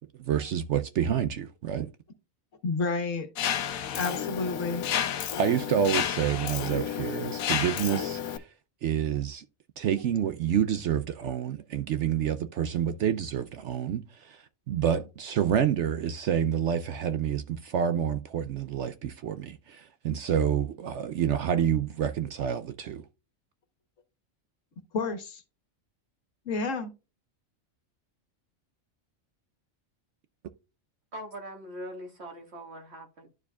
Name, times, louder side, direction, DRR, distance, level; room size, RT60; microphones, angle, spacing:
voice 1, 0.2-1.9 5.4-8.5 8.8-9.4 9.8-23.0, right 9 dB, 70° right, 0.8 m, -28 dB
voice 2, 2.6-3.3 4.0-4.8 24.9-25.4 26.4-26.9, left 3 dB, 65° left, 1.5 m, -30 dB
Mechanisms, 3.4-8.4, left 9 dB, 90° left, 1.2 m, -31 dB
voice 3, 31.1-33.3, equal, 55° right, 2.0 m, -41 dB
12.0 x 4.6 x 2.3 m
omnidirectional pair, 1.4 m